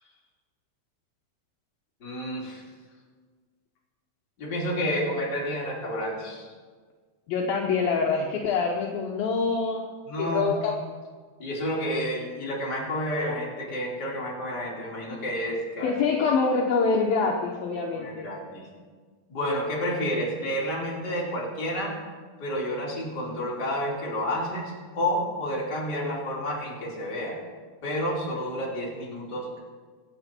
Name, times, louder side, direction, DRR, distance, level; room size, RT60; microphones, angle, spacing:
voice 1, 2.0-2.6 4.4-6.5 10.1-10.5 11.4-15.9 17.9-18.7 19.3-22.0 22.4-27.4 27.8-29.6, equal, 25° left, -4 dB, 3.4 m, -30 dB
voice 2, 7.3-9.9 10.2-10.8 15.8-18.3, left 4 dB, 70° left, 1 dB, 2.6 m, -25 dB
24.0 x 9.0 x 4.4 m, 1.5 s
omnidirectional pair, 4.6 m